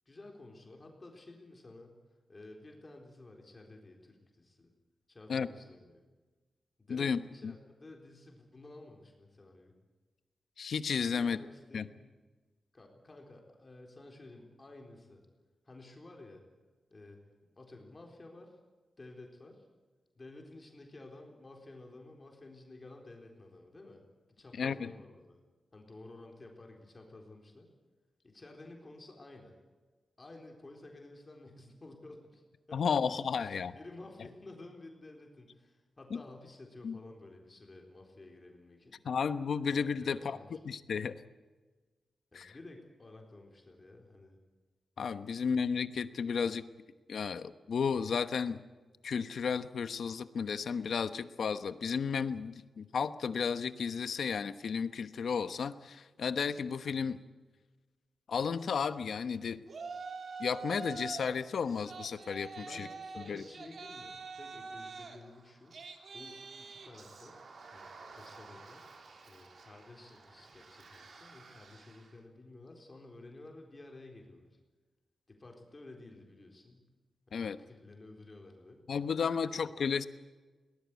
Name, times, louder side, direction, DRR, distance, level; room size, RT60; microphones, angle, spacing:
voice 1, 0.1-4.7 5.1-6.0 6.8-9.7 11.1-12.1 12.7-15.2 15.6-16.4 16.9-17.2 17.6-18.6 19.0-19.7 20.2-24.0 24.3-25.4 25.7-27.7 28.2-29.6 30.2-32.4 32.7-33.0 33.3-39.0 40.0-40.6 42.3-44.4 62.5-65.8 66.1-74.6 75.3-76.9 77.3-78.8 79.4-79.7, left 2 dB, 25° left, 1 dB, 3.9 m, -53 dB
voice 2, 6.9-7.5 10.6-11.4 11.7-11.8 24.6-24.9 32.7-33.7 36.1-36.2 36.8-37.0 39.0-40.4 40.6-41.1 42.3-42.5 45.0-46.6 47.1-48.6 49.0-57.2 58.3-59.6 60.4-62.9 63.3-63.4 77.3-77.6 78.9-80.0, left 6 dB, 70° left, 12 dB, 1.1 m, -33 dB
Yell, 59.7-61.3 61.7-72.1, right 4 dB, 55° right, 3.1 m, -47 dB
22.0 x 19.5 x 8.3 m, 1.3 s
wide cardioid pair, 135°, 0 cm